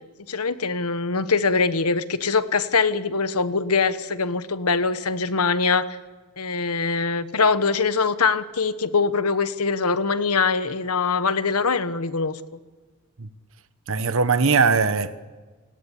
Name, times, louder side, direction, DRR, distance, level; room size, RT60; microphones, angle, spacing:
voice 1, 0.3-5.8 6.4-12.4, left 4 dB, 85° left, 1.3 m, -23 dB
voice 2, 13.9-15.2, right 5 dB, 65° right, 1.1 m, -20 dB
29.0 x 17.5 x 8.5 m
head